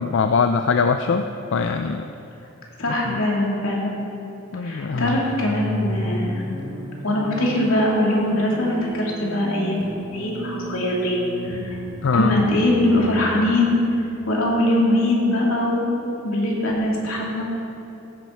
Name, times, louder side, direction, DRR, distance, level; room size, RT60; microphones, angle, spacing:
voice 1, 0.0-2.0 3.1-3.2 4.5-5.2 12.0-12.4, left 5 dB, 60° left, 7 dB, 0.4 m, -22 dB
voice 2, 2.8-3.9 4.6-6.4 7.0-11.2 11.5-11.8 12.1-15.9 16.2-17.4, left 1 dB, 80° left, -3 dB, 2.6 m, -22 dB
sound 1, 4.9-14.8, right 1 dB, 20° right, 1.2 m, -33 dB
15.0 x 9.2 x 4.4 m, 2.9 s
head